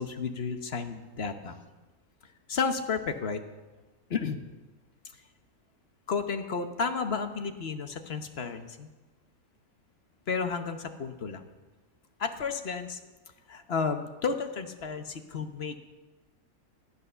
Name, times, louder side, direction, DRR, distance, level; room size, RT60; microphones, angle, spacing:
voice 1, 0.0-1.5 2.5-3.4 4.1-4.4 6.1-8.9 10.3-11.4 12.2-13.0 13.5-15.8, left 5 dB, 45° left, 7 dB, 1.1 m, -32 dB
13.5 x 11.0 x 6.7 m, 1.2 s
omnidirectional pair, 1.6 m